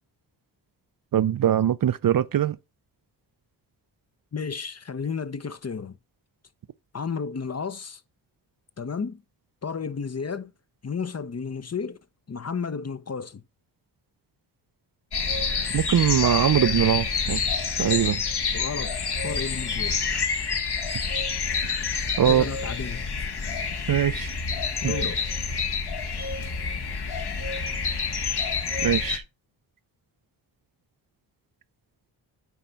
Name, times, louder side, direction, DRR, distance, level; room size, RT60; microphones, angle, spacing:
voice 1, 1.1-2.6 15.7-17.4 17.8-18.2 22.2-22.5 23.9-24.3 24.8-24.9 28.8-29.2, right 10 dB, 50° right, 0.5 m, -22 dB
voice 2, 4.3-6.0 6.9-8.0 8.8-9.2 9.6-10.5 10.8-12.0 12.3-13.4 18.5-20.0 22.3-23.1 24.8-25.2, left 5 dB, 35° left, 0.8 m, -32 dB
sound 1, 15.1-29.2, left 5 dB, 55° left, 1.6 m, -28 dB
9.2 x 3.3 x 5.8 m
cardioid pair, 50°, 46 cm